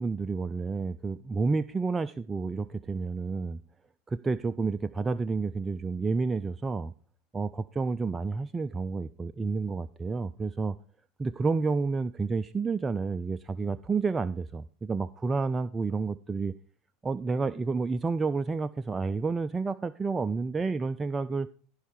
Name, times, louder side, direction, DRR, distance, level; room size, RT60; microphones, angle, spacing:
voice 1, 0.0-3.6 4.1-6.9 7.3-10.8 11.2-16.5 17.0-21.5, right 4 dB, 20° right, 12 dB, 0.4 m, -30 dB
14.5 x 5.4 x 4.8 m, 0.43 s
hypercardioid pair, 80°, 0 cm